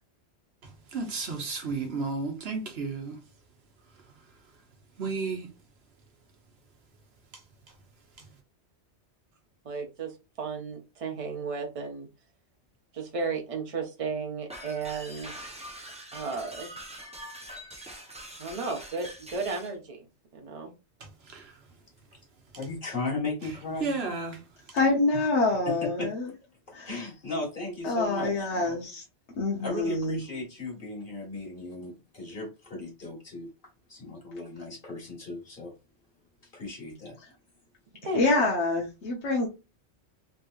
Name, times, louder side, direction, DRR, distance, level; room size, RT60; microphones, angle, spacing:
voice 1, 0.9-3.2 5.0-5.5 8.2-8.3 21.3-21.5 23.8-24.4, right 4 dB, 65° right, 1.1 m, -32 dB
voice 2, 9.6-12.1 12.9-15.6 16.1-16.7 18.4-20.1 20.3-20.7 38.0-38.2, right 4 dB, 35° right, 0.9 m, -34 dB
sound 1, 14.5-19.7, equal, 10° right, 0.5 m, -43 dB
voice 3, 22.5-23.9 25.6-26.4 26.8-28.8 29.6-33.5 33.9-35.7 36.5-37.1, left 2 dB, 50° left, 1.7 m, -36 dB
voice 4, 24.7-26.3 26.7-26.9 27.8-29.0 29.4-30.2 38.1-39.5, left 2 dB, 80° left, 1.1 m, -26 dB
3.5 x 2.9 x 2.4 m
omnidirectional pair, 1.1 m